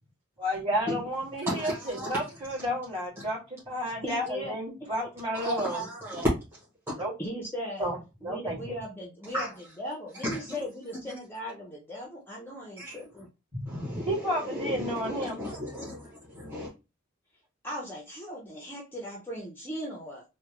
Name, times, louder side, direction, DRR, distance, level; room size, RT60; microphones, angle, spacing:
voice 1, 0.4-5.8 7.0-7.1 7.8-8.7 13.5-15.4, equal, 30° right, 2.0 m, -32 dB
voice 2, 1.4-2.2 5.3-6.3 6.9-7.0 9.3-9.5 10.2-10.6 12.8-13.0 13.7-16.7, left 1 dB, 15° right, 1.1 m, -34 dB
voice 3, 4.0-4.6 7.2-7.9 8.2-9.5 9.8-13.3 17.6-20.2, equal, 10° left, 0.6 m, -38 dB
3.5 x 2.2 x 2.9 m
head